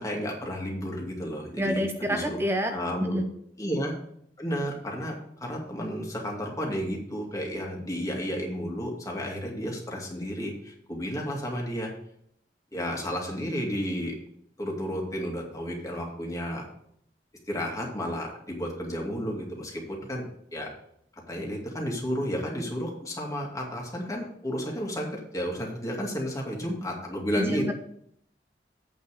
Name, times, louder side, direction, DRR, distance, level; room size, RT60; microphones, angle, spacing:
voice 1, 0.0-2.4 2.7-3.2 3.6-3.9 4.4-5.1 5.4-11.9 12.7-14.2 14.6-16.6 17.5-20.7 21.3-27.7, equal, 20° left, -1 dB, 2.4 m, -32 dB
voice 2, 1.6-3.3 27.3-27.7, equal, 15° right, 6 dB, 0.6 m, -28 dB
8.4 x 5.5 x 6.8 m, 0.69 s
head